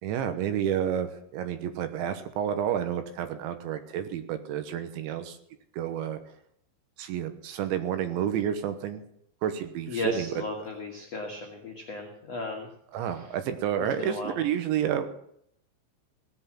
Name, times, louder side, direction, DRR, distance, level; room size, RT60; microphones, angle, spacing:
voice 1, 0.0-5.4 5.7-6.2 7.0-9.0 9.4-10.4 12.9-15.1, right 9 dB, 75° right, 9 dB, 3.2 m, -30 dB
voice 2, 9.9-12.7 14.0-14.3, left 3 dB, 70° left, 0 dB, 1.5 m, -35 dB
18.0 x 8.2 x 7.6 m, 0.72 s
omnidirectional pair, 5.9 m